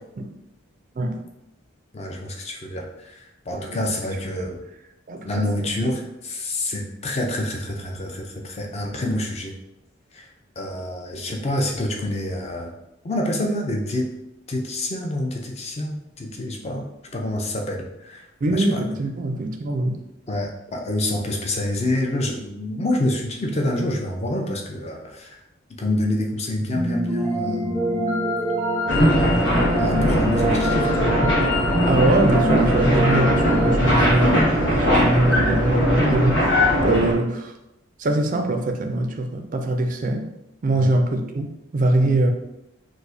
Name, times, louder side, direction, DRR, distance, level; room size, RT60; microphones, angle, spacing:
voice 1, 1.9-4.6 5.2-9.5 10.1-10.3 10.6-12.7 13.0-14.1 14.5-16.8 17.1-18.3 18.5-18.9 20.3-25.4 25.8-27.9 28.8-29.3 29.8-31.2 31.8-32.0 33.8-34.8 40.7-40.9 42.0-42.1, left 1 dB, 30° left, 0.4 m, -27 dB
voice 2, 5.1-5.9 18.4-20.1 31.9-36.6 36.8-37.5 38.0-40.3 40.6-42.3, right 2 dB, 40° right, 0.3 m, -23 dB
sound 1, 26.6-35.7, equal, 10° left, 1.0 m, -26 dB
sound 2, 28.9-37.1, equal, 65° left, 1.1 m, -20 dB
4.7 x 2.0 x 2.6 m
head